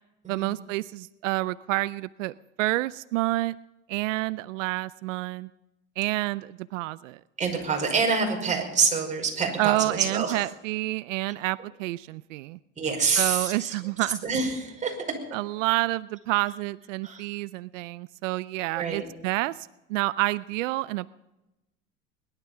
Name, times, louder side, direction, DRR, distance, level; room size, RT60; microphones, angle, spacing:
voice 1, 0.3-3.6 3.9-5.5 6.0-7.2 9.6-12.6 13.2-14.2 15.3-21.1, right 19 dB, 85° right, 18 dB, 0.5 m, -29 dB
voice 2, 7.4-10.4 12.8-13.7 14.2-15.0 17.0-17.2 18.8-19.0, right 5 dB, 20° right, 0 dB, 5.4 m, -26 dB
21.0 x 12.0 x 5.6 m, 0.98 s
supercardioid pair, 115°, 37 cm